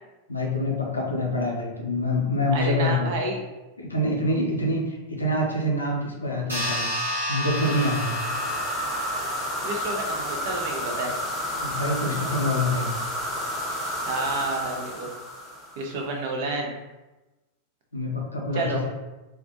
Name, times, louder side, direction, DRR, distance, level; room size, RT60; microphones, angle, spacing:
voice 1, 0.3-3.1 3.8-6.9 7.3-8.2 11.6-12.9 17.9-18.9, left 1 dB, 80° left, -1 dB, 0.5 m, -26 dB
voice 2, 2.5-3.4 9.6-11.1 14.1-15.1 15.8-16.8 18.5-18.8, right 2 dB, 50° right, 1 dB, 0.5 m, -30 dB
sound 1, 6.5-11.4, equal, 85° right, 0.8 m, -32 dB
sound 2, 7.4-16.0, equal, 5° left, 0.7 m, -31 dB
2.3 x 2.0 x 2.7 m, 1.1 s
figure-of-eight pair, 90°, 0 cm